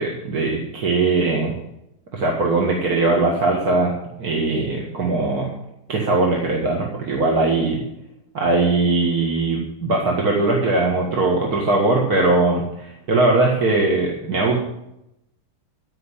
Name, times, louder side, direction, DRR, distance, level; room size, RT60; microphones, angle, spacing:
voice 1, 0.0-1.5 2.1-5.5 5.9-7.8 8.3-14.6, right 2 dB, 60° right, -1 dB, 2.3 m, -20 dB
15.0 x 5.8 x 9.7 m, 0.84 s
omnidirectional pair, 1.9 m